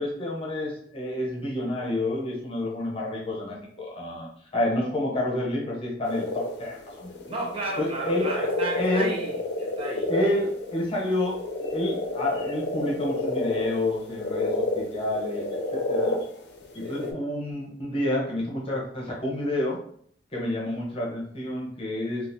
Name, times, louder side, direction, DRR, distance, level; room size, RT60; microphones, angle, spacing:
voice 1, 0.0-7.1 7.8-8.3 8.7-9.1 10.1-16.2 16.7-19.8 20.3-22.3, left 1 dB, 30° left, -3 dB, 0.9 m, -29 dB
sound 1, 6.0-17.1, left 2 dB, 65° left, 0.6 m, -30 dB
voice 2, 7.3-10.1 16.8-17.1, right 1 dB, 30° right, -2 dB, 0.7 m, -33 dB
3.7 x 2.4 x 2.6 m, 0.63 s
head